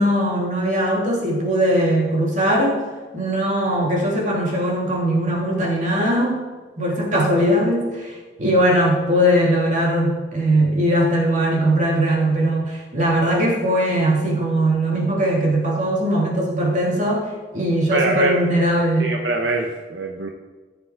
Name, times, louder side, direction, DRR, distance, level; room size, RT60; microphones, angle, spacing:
voice 1, 0.0-2.8 3.1-6.4 6.8-8.1 8.4-19.2, right 1 dB, 45° right, -3 dB, 3.2 m, -20 dB
voice 2, 17.9-18.4 19.0-20.3, right 3 dB, 70° right, 2 dB, 0.9 m, -23 dB
14.5 x 7.0 x 4.8 m, 1.3 s
head